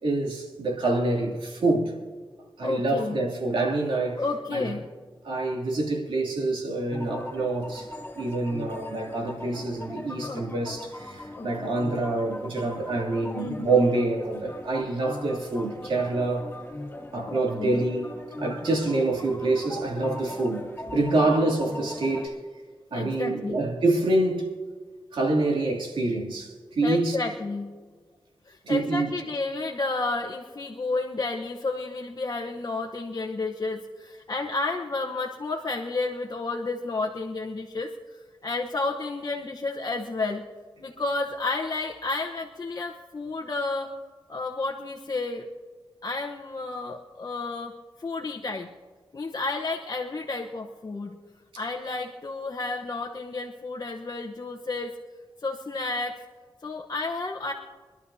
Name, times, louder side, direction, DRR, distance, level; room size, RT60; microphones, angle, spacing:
voice 1, 0.0-1.9 2.6-4.2 4.5-4.7 5.2-7.9 8.2-16.5 17.1-18.0 18.4-20.7 20.9-22.3 22.9-24.5 25.1-27.2 28.6-29.2, right 2 dB, 80° right, 2.9 m, -26 dB
voice 2, 2.6-3.2 4.2-4.9 10.2-10.4 11.4-11.5 13.3-13.8 17.2-17.8 22.9-23.6 26.8-27.7 28.5-40.4 40.8-43.9 44.3-45.5 46.0-47.7 48.0-48.7 49.1-51.1 51.6-55.0 55.4-56.2 56.6-57.5, left 3 dB, 45° left, 1.1 m, -31 dB
sound 1, 6.9-22.3, left 1 dB, 25° left, 3.3 m, -39 dB
25.0 x 12.0 x 2.8 m
cardioid pair, 50°, 9 cm